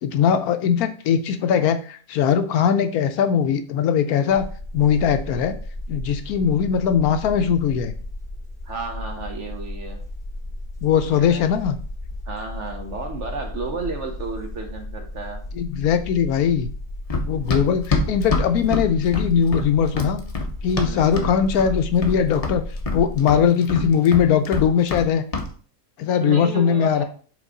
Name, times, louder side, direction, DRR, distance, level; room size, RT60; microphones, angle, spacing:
voice 1, 0.0-4.5 4.7-5.6 5.9-7.9 10.8-11.8 15.5-16.7 17.3-20.2 20.6-22.6 22.9-25.2 26.0-27.0, left 7 dB, 75° left, 9 dB, 1.0 m, -20 dB
sound 1, 4.3-23.2, left 1 dB, 5° left, 0.8 m, -34 dB
voice 2, 8.6-10.0 11.3-11.5 12.3-15.4 20.9-21.1 26.2-27.0, right 4 dB, 50° right, 4 dB, 1.2 m, -32 dB
Run, 17.1-21.3 21.6-22.2 22.4-25.1 25.3-25.5, left 3 dB, 35° left, 0.6 m, -25 dB
5.2 x 3.8 x 4.8 m, 0.43 s
omnidirectional pair, 1.7 m